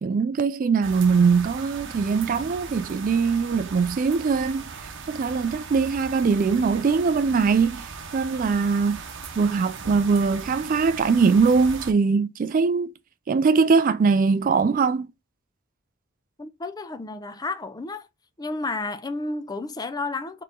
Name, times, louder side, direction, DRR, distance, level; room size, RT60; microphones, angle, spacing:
voice 1, 0.0-4.7 5.1-9.0 9.4-12.9 13.3-15.1, right 5 dB, 40° right, 0.3 m, -21 dB
sound 1, 0.8-11.9, right 5 dB, 60° right, 0.8 m, -38 dB
voice 2, 16.4-18.1 18.4-20.4, left 3 dB, 20° left, 0.5 m, -31 dB
4.5 x 3.1 x 3.6 m
head